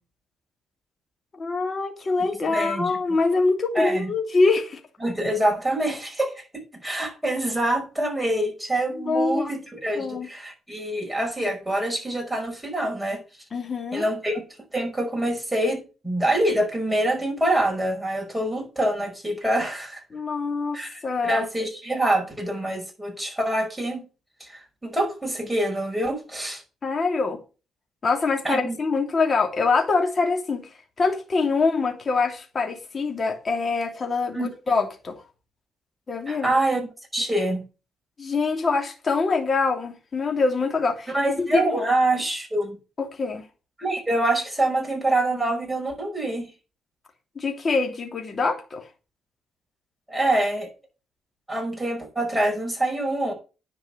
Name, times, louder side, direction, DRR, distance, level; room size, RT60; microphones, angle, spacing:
voice 1, 1.4-4.8 9.0-9.5 9.9-10.3 13.5-14.0 20.1-21.4 26.8-27.4 28.0-30.7 31.0-35.1 36.1-36.5 38.2-41.1 41.4-41.8 43.0-43.5 47.4-48.8, left 4 dB, 35° left, 2.8 m, -24 dB
voice 2, 2.2-3.0 3.8-4.1 5.0-13.2 13.9-14.4 14.7-20.0 20.7-24.0 24.4-26.6 28.4-28.8 34.3-34.5 36.3-36.9 37.1-37.6 41.1-42.8 43.8-46.5 50.1-50.7 51.5-53.3, right 1 dB, 10° right, 5.6 m, -25 dB
10.5 x 5.4 x 7.2 m
cardioid pair, 90°, 0 cm